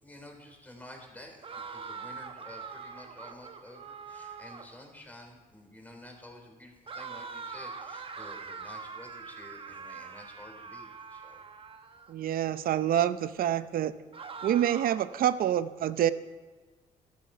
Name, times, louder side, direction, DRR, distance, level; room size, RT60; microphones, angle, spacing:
voice 1, 0.0-11.4, left 1 dB, 10° left, 2 dB, 3.5 m, -50 dB
sound 1, 1.4-4.8 6.9-12.1 14.1-15.2, right 5 dB, 35° right, 1.0 m, -43 dB
voice 2, 12.1-13.9 14.4-16.1, right 11 dB, 70° right, 14 dB, 0.7 m, -27 dB
13.0 x 12.5 x 5.6 m, 1.3 s
cardioid pair, 105°, 15 cm